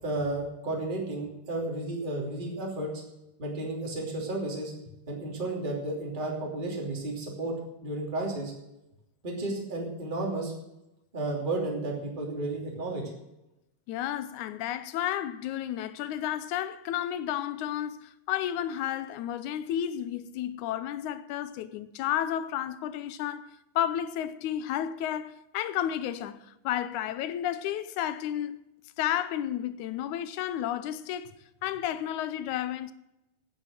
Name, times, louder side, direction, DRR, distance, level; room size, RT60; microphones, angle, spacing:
voice 1, 0.0-2.9 3.4-4.7 5.1-7.5 7.8-8.5 9.2-10.5 11.1-13.1, right 2 dB, 15° right, 2.8 m, -32 dB
voice 2, 13.9-28.6 29.0-31.3 31.6-32.9, left 11 dB, 75° left, 2.1 m, -32 dB
10.5 x 9.5 x 7.5 m
omnidirectional pair, 3.6 m